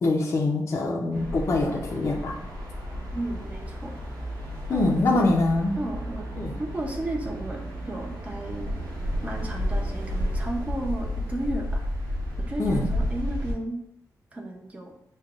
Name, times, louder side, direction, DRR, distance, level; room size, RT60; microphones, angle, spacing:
voice 1, 0.0-2.4 4.7-5.8 6.4-6.6 12.6-12.9, left 2 dB, 45° left, -2 dB, 0.5 m, -24 dB
sound 1, 1.1-13.5, equal, 75° right, 1.0 m, -32 dB
voice 2, 3.1-3.9 4.7-4.9 5.8-6.3 6.6-8.7 9.2-11.8 12.5-13.8 14.3-14.9, right 1 dB, 20° right, 1 dB, 0.6 m, -33 dB
6.4 x 2.2 x 2.4 m, 0.77 s
wide cardioid pair, 150°, 7 cm